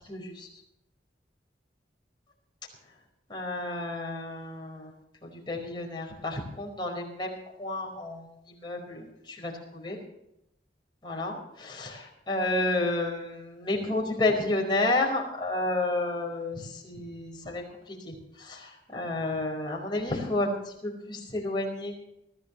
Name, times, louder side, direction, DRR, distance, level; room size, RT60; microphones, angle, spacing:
voice 1, 0.1-0.5 3.3-4.9 5.5-8.2 8.6-10.0 11.0-22.0, left 2 dB, 25° left, 0 dB, 4.9 m, -31 dB
24.0 x 15.5 x 3.2 m, 0.81 s
head